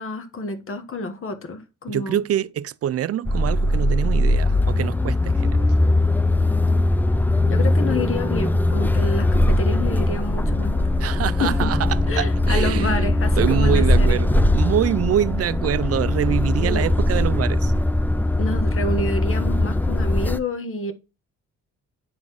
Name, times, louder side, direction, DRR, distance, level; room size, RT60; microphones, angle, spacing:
voice 1, 0.0-2.2 7.5-10.9 11.4-11.7 12.1-14.2 16.6-16.9 18.4-20.9, left 2 dB, 45° left, 1.3 m, -29 dB
voice 2, 1.9-5.7 11.0-13.1 13.4-17.7, right 10 dB, 50° right, 0.4 m, -25 dB
sound 1, 3.3-20.4, left 1 dB, 5° left, 0.5 m, -20 dB
9.6 x 4.0 x 4.7 m
cardioid pair, 115°, 30 cm